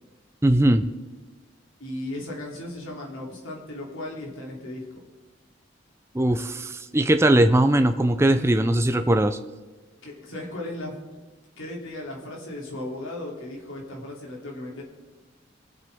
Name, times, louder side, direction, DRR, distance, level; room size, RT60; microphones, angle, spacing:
voice 1, 0.4-0.9 6.1-9.4, right 1 dB, 15° right, 8 dB, 0.5 m, -20 dB
voice 2, 1.8-5.0 10.0-11.0 11.6-14.8, left 1 dB, 90° left, -2 dB, 3.1 m, -36 dB
22.0 x 8.0 x 3.6 m, 1.3 s
head